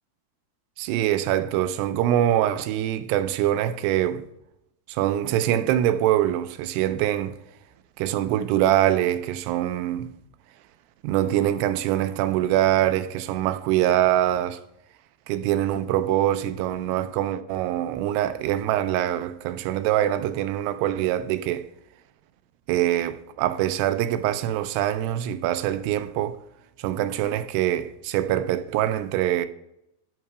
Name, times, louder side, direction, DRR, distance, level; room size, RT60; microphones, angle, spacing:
voice 1, 0.8-4.2 4.9-7.4 8.0-10.1 11.0-14.6 15.3-21.7 22.7-26.4 26.8-29.5, right 12 dB, 85° right, 2.6 m, -24 dB
10.5 x 4.6 x 4.8 m
omnidirectional pair, 4.8 m